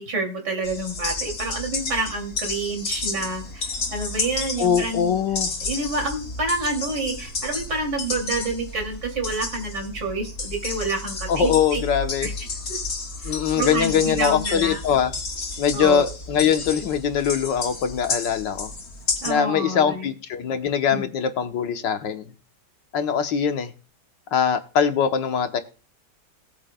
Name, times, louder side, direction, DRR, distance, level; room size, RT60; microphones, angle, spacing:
voice 1, 0.0-5.2 5.6-11.8 12.2-12.3 12.7-12.8 13.2-14.8 15.7-16.1 19.2-20.1 20.9-21.1, right 2 dB, 65° right, 2 dB, 3.4 m, -28 dB
sound 1, 0.6-19.3, left 3 dB, 50° left, 2.3 m, -31 dB
voice 2, 4.6-5.5 11.3-12.3 13.2-15.1 15.6-18.7 19.3-22.3 22.9-23.7 24.3-25.6, left 7 dB, 75° left, 7 dB, 1.7 m, -22 dB
19.0 x 8.8 x 2.3 m, 0.35 s
omnidirectional pair, 2.0 m